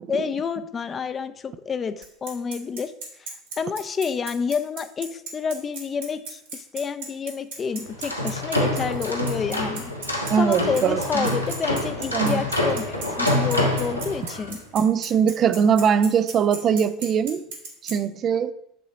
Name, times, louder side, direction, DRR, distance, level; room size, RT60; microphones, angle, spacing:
voice 1, 0.1-2.9 3.2-3.3 3.6-9.9 10.4-14.6, left 6 dB, 30° left, 11 dB, 0.5 m, -29 dB
Bicycle, 2.0-17.9, right 4 dB, 70° right, 2.2 m, -36 dB
sound 1, 7.9-14.5, left 1 dB, 90° left, 0.9 m, -26 dB
voice 2, 10.3-11.4 12.1-12.4 14.7-17.4 17.8-18.5, right 7 dB, 40° right, 13 dB, 0.4 m, -21 dB
6.9 x 3.9 x 6.2 m, 0.76 s
figure-of-eight pair, 70°, 0 cm